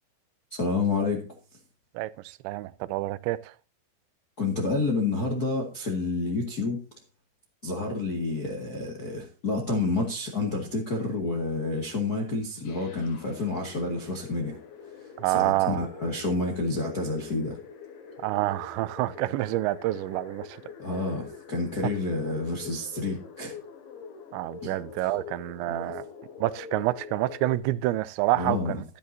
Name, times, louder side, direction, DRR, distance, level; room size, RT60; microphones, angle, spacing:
voice 1, 0.5-1.3 4.4-6.8 7.6-14.6 15.2-17.6 20.8-23.5 24.6-24.8 25.7-26.0 28.3-28.8, left 3 dB, 45° left, 1.1 m, -29 dB
voice 2, 2.0-3.5 15.2-15.8 18.2-20.6 21.8-21.9 24.3-26.0 26.4-28.8, right 17 dB, 85° right, 2.9 m, -28 dB
sound 1, 12.6-27.6, left 6 dB, 85° left, 4.6 m, -45 dB
12.5 x 12.0 x 2.7 m
omnidirectional pair, 5.1 m